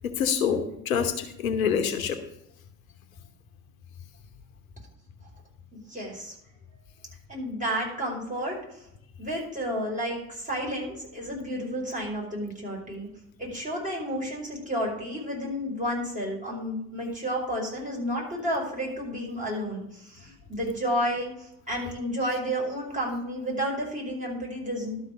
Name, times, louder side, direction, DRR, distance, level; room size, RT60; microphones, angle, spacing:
voice 1, 0.0-2.2, left 7 dB, 75° left, 8 dB, 1.0 m, -26 dB
voice 2, 5.7-6.4 7.3-8.8 9.2-13.1 13.4-25.1, equal, 20° right, -3 dB, 5.2 m, -31 dB
12.0 x 5.7 x 6.2 m, 0.80 s
figure-of-eight pair, 50°, 42 cm